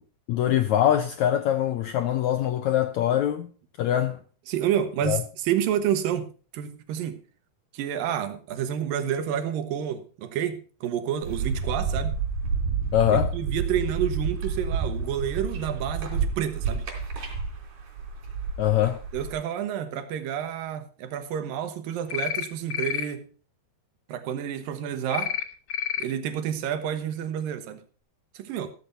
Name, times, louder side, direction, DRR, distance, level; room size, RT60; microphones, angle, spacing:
voice 1, 0.3-3.5 3.8-4.2 5.0-5.2 12.9-13.3 18.6-19.0, left 11 dB, 80° left, 1.7 m, -23 dB
voice 2, 4.5-6.3 6.5-7.2 7.7-12.2 13.1-16.9 19.1-23.3 24.1-25.4 26.0-27.8 28.3-28.7, right 9 dB, 75° right, 2.9 m, -29 dB
sound 1, 11.2-19.3, right 5 dB, 55° right, 4.3 m, -30 dB
sound 2, 22.1-22.4 22.7-23.0 25.1-25.4 25.7-26.0, left 8 dB, 60° left, 1.0 m, -29 dB
14.5 x 13.5 x 2.7 m
omnidirectional pair, 4.2 m